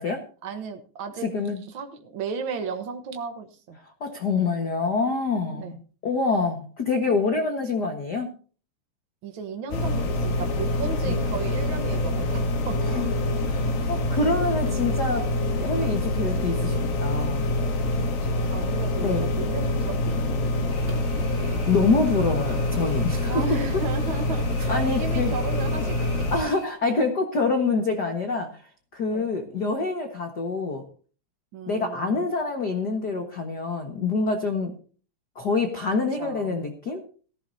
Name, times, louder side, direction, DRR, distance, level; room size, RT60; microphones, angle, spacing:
voice 1, 0.4-1.3 1.7-3.8 5.5-5.8 9.2-13.0 18.2-21.3 23.3-26.2 29.1-29.3 31.5-32.3 36.2-36.6, right 4 dB, 80° right, 5 dB, 1.1 m, -35 dB
voice 2, 1.2-1.6 4.0-5.7 6.0-8.3 11.0-11.2 12.8-13.1 13.5-15.3 15.5-17.5 19.0-19.4 21.7-23.4 23.7-23.8 24.7-25.3 26.3-28.6 28.9-30.8 31.7-34.8 35.3-37.0, left 3 dB, 60° left, 4 dB, 1.0 m, -26 dB
sound 1, 9.7-26.4, left 1 dB, 75° left, 3.9 m, -26 dB
sound 2, 20.7-26.7, right 2 dB, 20° right, 3.4 m, -46 dB
17.0 x 14.5 x 2.7 m, 0.40 s
omnidirectional pair, 4.1 m